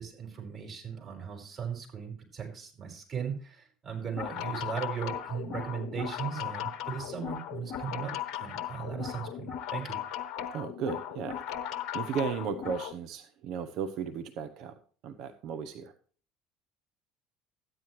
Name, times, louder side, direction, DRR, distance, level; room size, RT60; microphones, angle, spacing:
voice 1, 0.0-8.1 8.4-10.0, right 7 dB, 40° right, 1 dB, 5.3 m, -37 dB
sound 1, 4.0-12.9, left 10 dB, 60° left, 1.2 m, -37 dB
voice 2, 10.5-11.4 11.9-14.8 15.0-15.9, right 7 dB, 60° right, 8 dB, 0.9 m, -35 dB
13.5 x 9.8 x 3.2 m, 0.42 s
hypercardioid pair, 65°, 0 cm